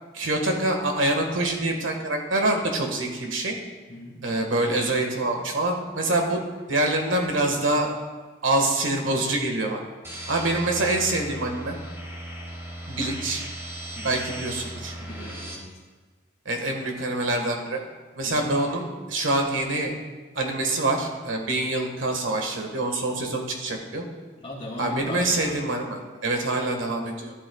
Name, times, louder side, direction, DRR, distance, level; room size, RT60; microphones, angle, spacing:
voice 1, 0.1-3.6 4.2-6.4 6.7-7.9 8.4-9.8 10.3-11.8 12.9-13.4 14.0-14.9 16.5-17.8 18.2-19.9 20.4-24.0 24.8-27.3, right 2 dB, 80° right, 2 dB, 1.6 m, -25 dB
voice 2, 3.9-4.2 13.9-14.2 15.0-15.7 18.3-18.5 24.4-25.5, left 1 dB, 30° left, -4 dB, 2.4 m, -37 dB
sound 1, 10.0-15.6, right 1 dB, 15° right, 1.4 m, -37 dB
13.5 x 11.5 x 2.4 m, 1.3 s
head